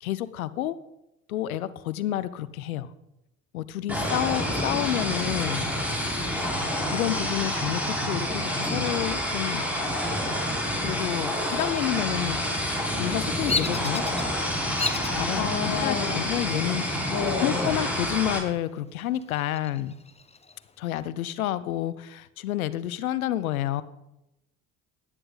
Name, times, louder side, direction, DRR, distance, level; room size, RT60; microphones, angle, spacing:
voice 1, 0.0-0.8 1.3-2.9 3.5-5.7 6.0-6.1 6.9-9.6 10.8-12.4 12.9-14.0 15.1-17.1 17.4-19.9 20.8-23.8, left 13 dB, 85° left, 17 dB, 0.7 m, -29 dB
sound 1, 3.9-18.4, equal, 5° right, 4.5 m, -28 dB
Bird vocalization bird call bird song, 13.5-14.2 14.8-15.2 15.8-16.3 17.5-18.2 18.6-18.7 19.1-20.6, left 4 dB, 15° left, 1.0 m, -32 dB
voice 2, 15.3-16.2 17.0-17.7, left 7 dB, 50° left, 5 dB, 2.7 m, -29 dB
17.5 x 11.0 x 4.0 m, 0.90 s
hypercardioid pair, 55°, 41 cm